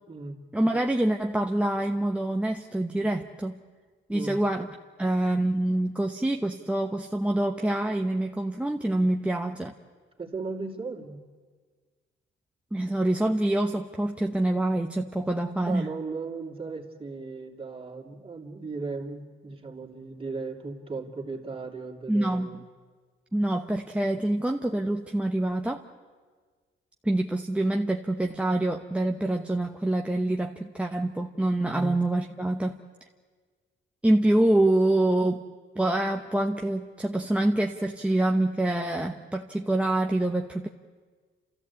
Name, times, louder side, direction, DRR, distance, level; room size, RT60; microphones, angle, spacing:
voice 1, 0.5-3.6 4.1-4.7 5.0-9.7 12.7-15.9 22.1-22.6 23.3-25.8 27.0-32.8 34.0-35.4 35.7-40.7, right 1 dB, 5° right, 2 dB, 0.9 m, -26 dB
voice 2, 10.2-11.2 15.7-22.6 31.7-32.0, right 4 dB, 30° right, 1 dB, 2.9 m, -36 dB
30.0 x 14.0 x 8.5 m, 1.5 s
cardioid pair, 90°, 20 cm